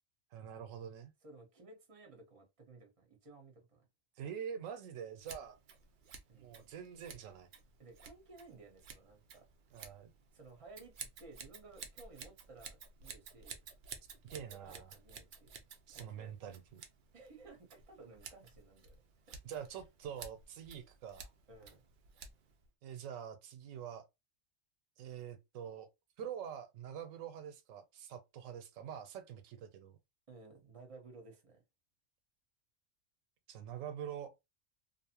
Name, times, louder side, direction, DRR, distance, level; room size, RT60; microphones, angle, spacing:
voice 1, 0.3-1.1 4.2-5.6 6.3-7.5 9.7-10.1 14.3-14.9 15.9-16.8 19.4-21.3 22.8-24.0 25.0-25.9 26.2-30.0 33.5-34.3, right 8 dB, 90° right, 1.0 m, -45 dB
voice 2, 1.2-3.8 6.3-6.6 7.8-9.5 10.3-13.6 14.2-15.5 15.9-16.3 17.1-19.0 19.3-19.4 21.5-21.8 30.3-31.6, right 3 dB, 30° right, 0.8 m, -57 dB
Scissors, 5.2-22.7, right 6 dB, 60° right, 0.5 m, -54 dB
2.8 x 2.0 x 2.8 m
omnidirectional pair, 1.3 m